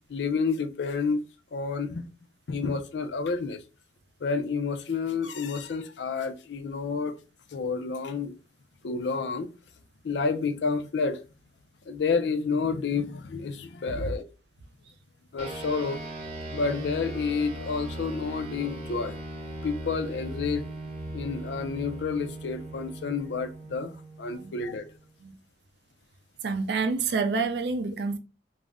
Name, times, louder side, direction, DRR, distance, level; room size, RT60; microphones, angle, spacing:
voice 1, 0.1-1.2 1.5-2.0 2.5-3.6 4.2-7.2 7.5-8.4 8.8-9.5 10.0-11.2 11.9-14.2 15.3-16.0 16.5-19.2 19.6-20.7 21.1-23.9 24.2-24.9, left 4 dB, 75° left, 0.4 m, -29 dB
sound 1, 15.4-25.1, right 1 dB, 35° right, 0.7 m, -39 dB
voice 2, 26.4-28.2, right 4 dB, 65° right, 0.4 m, -28 dB
2.4 x 2.0 x 3.4 m
head